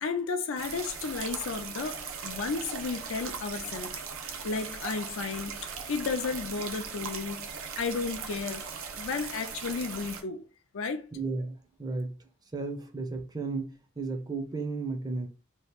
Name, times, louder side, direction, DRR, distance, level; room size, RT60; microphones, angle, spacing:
voice 1, 0.0-4.0 4.4-7.5 7.8-8.7 9.0-10.5 10.7-11.1, left 4 dB, 70° left, 0.4 m, -33 dB
sound 1, 0.6-10.2, right 6 dB, 85° right, 0.6 m, -39 dB
voice 2, 11.1-12.1 12.5-15.3, right 3 dB, 20° right, 0.5 m, -34 dB
2.9 x 2.4 x 3.4 m
head